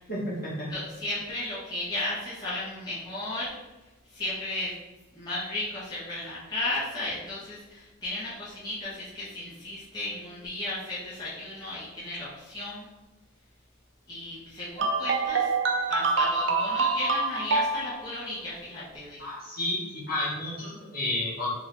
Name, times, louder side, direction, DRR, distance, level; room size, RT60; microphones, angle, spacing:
voice 1, 0.1-0.7 19.2-19.8 20.1-21.5, left 1 dB, 45° left, -6 dB, 1.5 m, -31 dB
voice 2, 0.7-3.5 4.1-4.7 5.1-12.9 14.1-15.5 15.9-19.2, left 2 dB, 20° left, -10 dB, 1.1 m, -34 dB
sound 1, 14.8-18.0, right 3 dB, 60° right, 0.5 m, -26 dB
3.8 x 2.7 x 4.6 m, 1.1 s
head